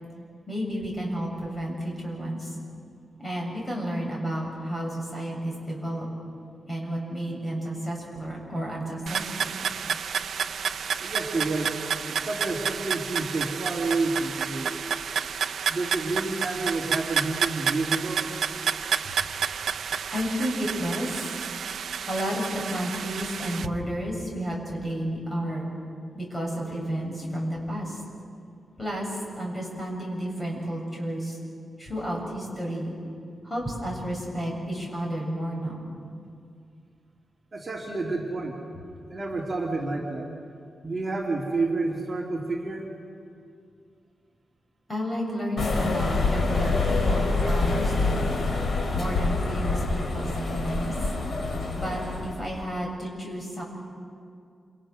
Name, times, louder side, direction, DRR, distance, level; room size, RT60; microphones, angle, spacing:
voice 1, 0.5-2.5 3.2-6.1 6.7-9.5 19.2-19.3 20.1-21.3 22.1-25.7 26.1-28.0 28.8-31.4 31.8-33.0 33.4-35.9 44.9-48.3 48.9-50.9 51.7-53.6, equal, 15° left, -1 dB, 7.6 m, -31 dB
sound 1, 9.1-23.7, right 7 dB, 85° right, 0.6 m, -30 dB
voice 2, 11.0-11.8 12.1-14.8 15.7-18.3 37.5-38.6 39.1-40.3 40.8-42.9, right 3 dB, 35° right, -2 dB, 2.9 m, -29 dB
sound 2, 45.6-52.5, left 3 dB, 60° left, 3.7 m, -26 dB
28.5 x 28.0 x 6.3 m, 2.4 s
wide cardioid pair, 130°, 0 cm